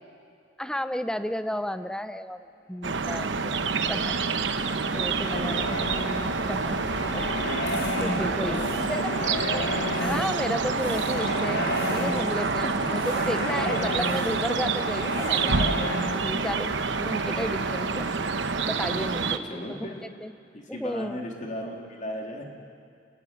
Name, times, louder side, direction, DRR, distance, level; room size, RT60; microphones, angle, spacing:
voice 1, 0.6-3.6 3.9-4.2 4.9-5.7 6.5-6.8 7.1-7.4 7.7-9.0 9.5-9.6 10.0-11.6 11.9-16.7 17.0-18.1 18.6-19.9 20.2-20.3 20.7-21.2, equal, 5° left, 11 dB, 0.7 m, -33 dB
sound 1, 2.8-19.4, right 4 dB, 80° right, 0.9 m, -28 dB
sound 2, 3.2-19.8, left 2 dB, 60° left, 1.7 m, -34 dB
voice 2, 5.3-6.2 8.2-10.1 12.6-13.1 19.3-20.1 20.5-22.4, left 1 dB, 45° left, 0 dB, 3.0 m, -37 dB
sound 3, 6.3-9.4 9.7-10.5 10.8-11.3 11.7-12.2 12.9-13.5 13.9-14.5 14.9-15.6, left 3 dB, 90° left, 6.4 m, -48 dB
28.0 x 13.5 x 9.5 m, 2.4 s
head